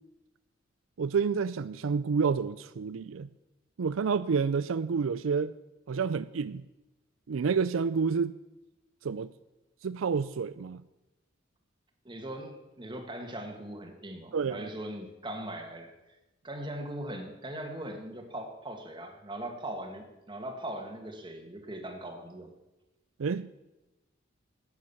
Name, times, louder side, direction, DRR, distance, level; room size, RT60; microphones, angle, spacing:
voice 1, 1.0-3.3 3.8-5.5 5.9-6.6 7.3-8.4 9.0-9.3 9.8-10.8 14.3-14.7 23.2-23.5, right 5 dB, 85° right, 15 dB, 0.4 m, -29 dB
voice 2, 12.0-15.9 16.4-22.5, right 1 dB, 25° right, 4 dB, 2.0 m, -40 dB
15.0 x 9.3 x 7.1 m, 1.0 s
head